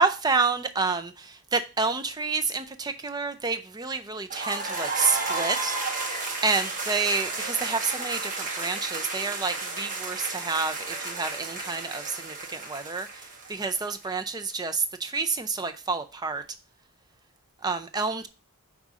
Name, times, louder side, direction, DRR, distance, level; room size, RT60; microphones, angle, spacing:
voice 1, 0.0-5.7 6.4-13.1 13.5-16.4 17.6-18.3, right 4 dB, 20° right, 0.4 m, -28 dB
sound 1, 4.3-14.1, right 3 dB, 35° right, 1.0 m, -32 dB
5.4 x 3.6 x 4.8 m
head